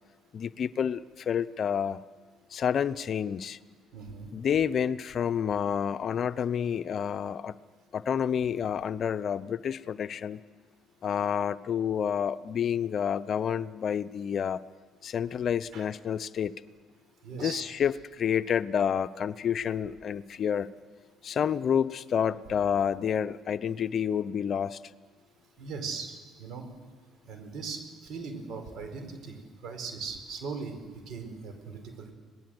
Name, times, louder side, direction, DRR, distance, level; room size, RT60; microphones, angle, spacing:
voice 1, 0.3-2.0 2.5-3.6 4.3-7.6 7.9-10.4 11.0-14.6 15.0-16.5 17.4-20.7 21.2-24.8, left 8 dB, 50° left, 14 dB, 0.7 m, -29 dB
voice 2, 3.9-4.3 15.7-15.8 17.2-17.6 25.6-26.1 26.4-26.7 27.2-29.4 29.6-30.8 31.1-32.1, right 5 dB, 65° right, 6 dB, 4.7 m, -39 dB
27.0 x 19.5 x 7.9 m, 1.5 s
supercardioid pair, 70°, 0 cm